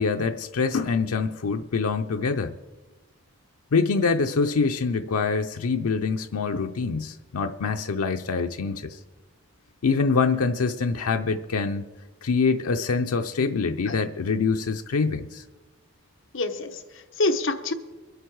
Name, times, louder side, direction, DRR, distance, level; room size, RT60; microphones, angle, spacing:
voice 1, 0.0-2.5 3.7-9.0 9.8-11.9 12.2-15.4, left 4 dB, 90° left, 5 dB, 0.5 m, -25 dB
voice 2, 16.3-17.7, left 2 dB, 60° left, 8 dB, 1.0 m, -27 dB
23.0 x 8.1 x 4.7 m, 1.2 s
head